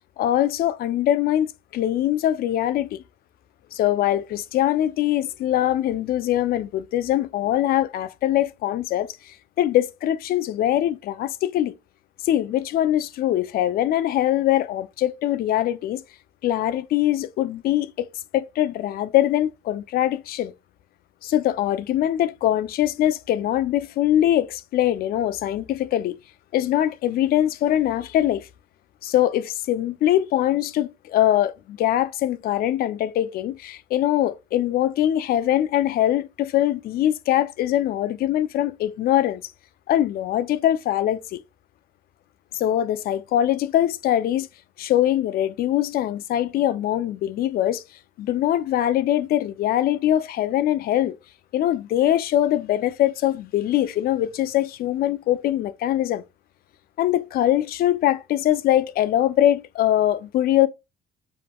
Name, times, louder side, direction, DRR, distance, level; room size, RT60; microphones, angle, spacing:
voice 1, 0.2-3.0 3.7-11.7 12.2-16.0 16.4-20.5 21.2-26.2 26.5-28.5 29.0-39.4 39.9-41.4 42.5-44.5 44.8-47.8 48.2-51.2 51.5-56.2 57.0-60.7, left 12 dB, 65° left, 0.4 m, -22 dB
7.0 x 2.9 x 2.2 m
cardioid pair, 110°, 17 cm